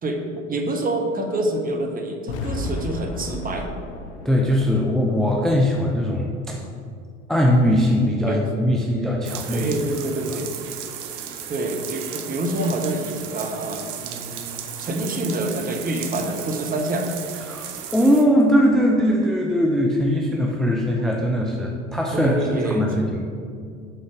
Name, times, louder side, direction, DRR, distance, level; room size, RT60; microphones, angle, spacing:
voice 1, 0.0-3.7 8.3-8.4 9.4-10.5 11.5-14.5 14.8-17.1 22.1-23.0, right 2 dB, 25° right, 3 dB, 0.8 m, -27 dB
sound 1, 2.3-6.4, left 2 dB, 50° left, 0.6 m, -34 dB
voice 2, 4.2-6.6 7.3-9.7 17.4-23.2, equal, ahead, -1 dB, 0.4 m, -20 dB
sound 2, 9.2-18.2, right 9 dB, 55° right, 0.7 m, -35 dB
5.7 x 3.8 x 4.9 m, 2.2 s
hypercardioid pair, 75°, 37 cm